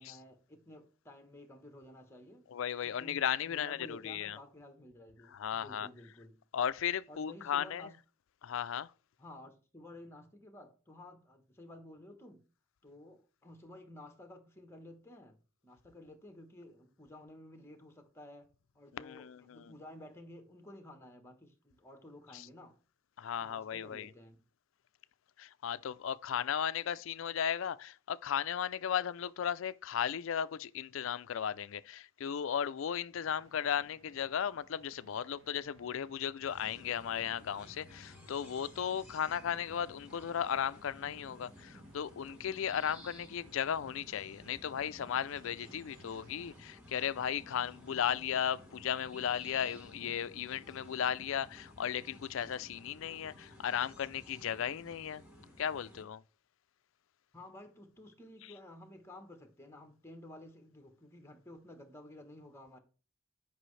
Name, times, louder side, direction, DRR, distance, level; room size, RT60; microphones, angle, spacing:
voice 1, 0.0-2.5 2.8-6.4 7.1-7.9 9.2-12.4 12.8-22.8 23.4-24.4 57.3-62.8, left 1 dB, 10° left, 1.1 m, -53 dB
voice 2, 2.5-4.4 5.3-5.9 6.5-7.9 8.4-8.9 18.9-19.7 22.3-22.5 23.2-24.1 25.4-55.2 55.6-56.2, left 8 dB, 65° left, 0.4 m, -36 dB
sound 1, 33.1-46.6, right 2 dB, 65° right, 1.0 m, -63 dB
sound 2, 36.4-56.0, left 1 dB, 5° right, 2.4 m, -55 dB
10.0 x 5.4 x 3.2 m
head